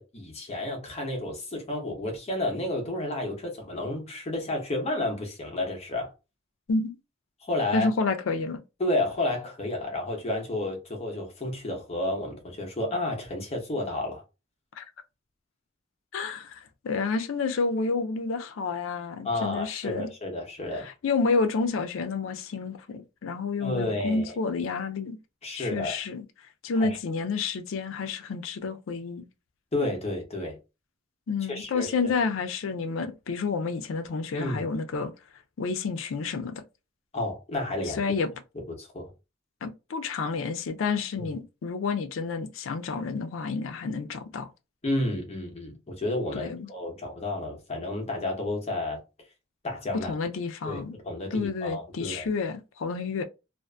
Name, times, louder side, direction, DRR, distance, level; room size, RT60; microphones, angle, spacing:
voice 1, 0.0-6.1 7.4-7.9 8.8-14.2 19.2-20.9 23.6-24.4 25.4-26.0 26.8-27.0 29.7-30.6 31.5-31.9 34.3-34.7 37.1-38.0 38.5-39.1 41.2-41.3 44.8-49.0 49.6-50.1 50.6-52.3, left 1 dB, 35° left, 0.8 m, -31 dB
voice 2, 7.7-8.6 14.8-14.9 16.1-20.1 20.8-25.2 25.5-26.2 26.6-29.2 31.3-35.1 35.6-36.6 37.9-38.3 39.6-44.5 46.3-46.7 49.9-51.0 51.3-53.2, left 4 dB, 85° left, 0.4 m, -29 dB
2.5 x 2.4 x 2.2 m
head